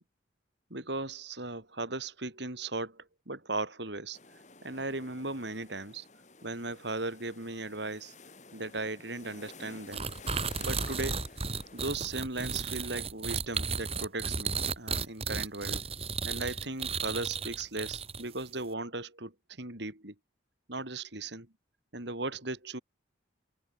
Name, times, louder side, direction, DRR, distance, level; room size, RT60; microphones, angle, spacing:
voice 1, 0.7-4.2 4.6-6.1 6.4-8.1 8.5-10.1 10.6-11.3 11.7-15.8 16.2-20.1 20.7-21.5 21.9-22.8, right 2 dB, 65° right, 4.3 m, -37 dB
sound 1, 4.1-12.0, left 3 dB, 40° left, 6.8 m, -52 dB
sound 2, 9.9-18.4, right 5 dB, 30° right, 4.1 m, -34 dB
open air
head